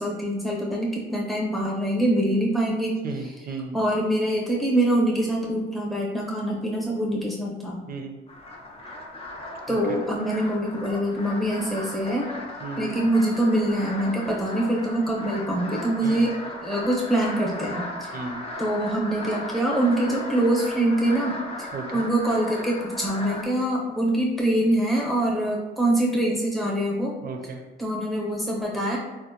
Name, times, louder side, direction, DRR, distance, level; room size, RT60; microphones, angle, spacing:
voice 1, 0.0-3.0 3.7-7.8 9.7-12.3 12.8-16.4 16.6-18.2 18.6-27.1 27.8-29.0, right 1 dB, ahead, -3 dB, 0.9 m, -24 dB
voice 2, 3.0-3.8 7.9-8.2 9.7-10.0 12.6-13.0 16.0-16.3 18.1-18.4 21.7-22.0 27.2-27.6, right 4 dB, 50° right, 4 dB, 0.5 m, -35 dB
sound 1, 8.3-23.4, left 1 dB, 30° left, 0.6 m, -37 dB
3.9 x 2.1 x 2.8 m, 1.1 s
cardioid pair, 90°, 20 cm